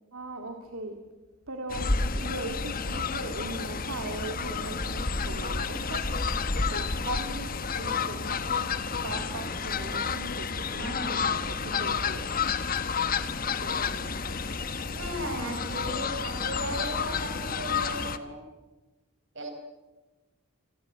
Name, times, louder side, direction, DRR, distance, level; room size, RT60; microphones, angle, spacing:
voice 1, 0.1-1.0 1.5-6.1 6.7-8.7 9.0-12.3 13.6-14.5, right 2 dB, 80° right, 3 dB, 2.3 m, -39 dB
Fowl, 1.7-18.2, left 5 dB, 40° left, 1.2 m, -30 dB
voice 2, 10.8-11.2 14.9-18.4 19.3-19.5, right 1 dB, 55° right, 5 dB, 5.5 m, -36 dB
28.0 x 18.5 x 8.9 m, 1.2 s
head